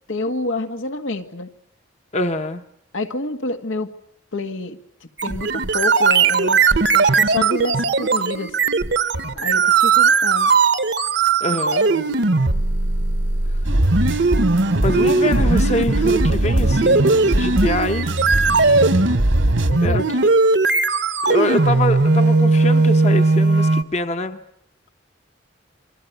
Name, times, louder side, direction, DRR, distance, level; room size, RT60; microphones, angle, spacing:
voice 1, 0.1-1.5 2.9-3.9 4.3-8.6 9.3-10.5 11.5-12.2 19.7-20.3, left 2 dB, 85° left, 6 dB, 1.9 m, -28 dB
voice 2, 2.1-2.6 11.4-11.9 14.8-18.1 19.8-20.0 21.3-24.4, left 1 dB, 35° left, 8 dB, 1.0 m, -24 dB
sound 1, 5.2-23.8, right 3 dB, 60° right, 1.1 m, -18 dB
sound 2, 13.6-19.7, right 1 dB, 85° right, 2.0 m, -23 dB
28.0 x 23.0 x 8.1 m, 0.71 s
head